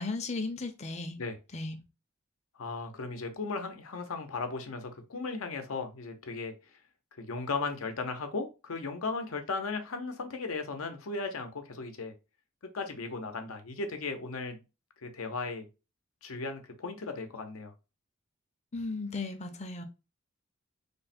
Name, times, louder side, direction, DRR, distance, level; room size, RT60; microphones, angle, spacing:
voice 1, 0.0-1.2 1.5-1.8 18.7-19.8, left 3 dB, 35° left, 0.5 m, -35 dB
voice 2, 2.6-6.5 7.2-12.1 12.7-14.6 15.0-15.7 16.2-17.7, left 4 dB, 90° left, 0.7 m, -36 dB
3.3 x 2.1 x 4.2 m
head